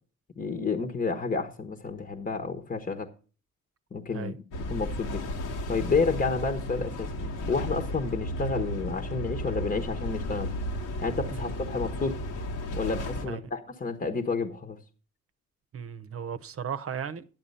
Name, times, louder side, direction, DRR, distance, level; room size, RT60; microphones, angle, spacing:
voice 1, 0.4-3.1 3.9-10.5 11.0-12.2 12.7-14.8, left 4 dB, 30° left, 1.2 m, -30 dB
sound 1, 4.5-13.2, left 1 dB, 85° left, 1.9 m, -34 dB
voice 2, 15.7-17.3, right 7 dB, 50° right, 0.8 m, -36 dB
10.5 x 7.5 x 5.5 m
cardioid pair, 90°, 30 cm